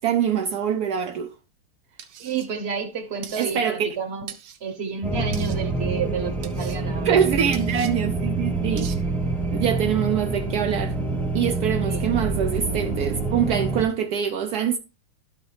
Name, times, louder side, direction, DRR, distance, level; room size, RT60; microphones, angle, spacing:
voice 1, 0.0-1.3 3.4-3.9 7.0-8.9 9.5-10.9 11.3-14.8, right 8 dB, 80° right, 0.8 m, -24 dB
sound 1, 2.0-2.5 3.2-3.5 4.3-4.6 5.3-5.6 6.4-6.8 7.5-7.9 8.8-9.0, right 9 dB, 65° right, 1.2 m, -40 dB
voice 2, 2.2-4.3 4.6-7.2 11.8-12.1, right 5 dB, 45° right, 0.9 m, -30 dB
sound 2, 5.0-13.8, right 3 dB, ahead, 0.6 m, -26 dB
12.0 x 5.3 x 3.3 m
omnidirectional pair, 2.3 m